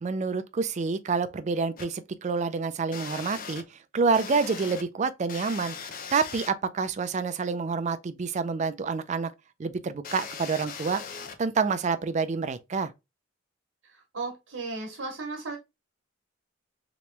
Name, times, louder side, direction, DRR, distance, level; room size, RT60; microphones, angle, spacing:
voice 1, 0.0-9.3 9.6-11.0 11.4-12.9, right 4 dB, 35° right, 0.4 m, -28 dB
sound 1, 1.8-1.9 2.9-3.6 4.1-4.8 5.3-6.5 10.0-11.4, left 6 dB, 45° left, 0.5 m, -39 dB
voice 2, 14.1-15.6, right 3 dB, 70° right, 1.1 m, -35 dB
3.0 x 3.0 x 3.2 m
head